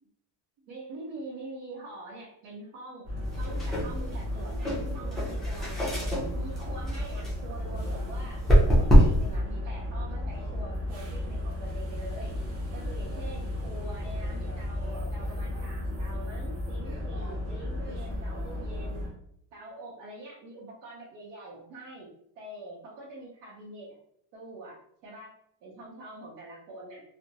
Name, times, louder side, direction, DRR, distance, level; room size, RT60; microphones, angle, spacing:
voice 1, 0.6-3.1 3.4-6.0 6.3-12.3 12.7-19.0 19.5-22.1 22.4-24.0 24.3-24.8 25.0-25.3 25.6-27.0, right 2 dB, 75° right, -5 dB, 0.8 m, -44 dB
sound 1, 3.0-19.1, left 1 dB, 35° right, 0.7 m, -34 dB
sound 2, 3.2-9.4, equal, ahead, 0.4 m, -25 dB
2.5 x 2.1 x 2.7 m, 0.69 s
cardioid pair, 170°, 43 cm